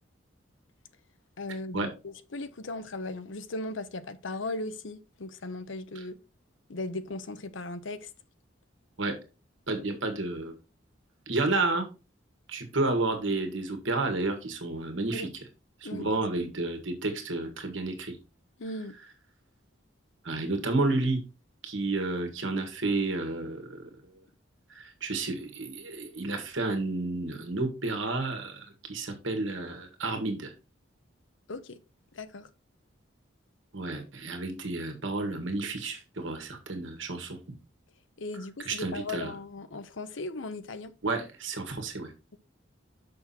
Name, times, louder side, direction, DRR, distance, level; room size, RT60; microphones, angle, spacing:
voice 1, 1.4-6.2 6.7-8.1 15.1-15.3 15.8-16.2 18.6-19.0 31.5-31.8 32.1-32.5 38.2-40.9, left 2 dB, 75° left, 0.8 m, -37 dB
voice 2, 9.7-10.5 11.3-11.9 12.5-15.3 15.8-18.2 20.2-21.2 21.6-23.8 24.7-30.5 33.7-37.4 38.6-39.3 41.0-42.1, right 2 dB, 75° right, 1.8 m, -31 dB
6.4 x 6.0 x 4.2 m
head